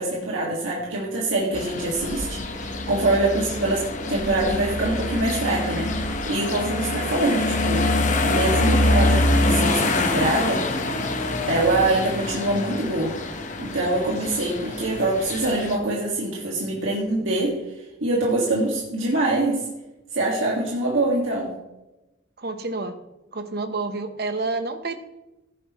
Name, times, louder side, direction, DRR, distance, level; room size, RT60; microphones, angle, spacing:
voice 1, 0.0-7.8 8.2-10.7 11.5-13.2 13.6-17.6 18.0-19.7 20.1-21.5, right 2 dB, 80° right, -3 dB, 2.0 m, -24 dB
sound 1, 1.5-15.8, left 2 dB, 40° left, 1.1 m, -25 dB
voice 2, 22.4-23.0 23.3-25.0, right 3 dB, 50° right, 8 dB, 1.0 m, -29 dB
15.0 x 10.5 x 3.1 m, 0.98 s
head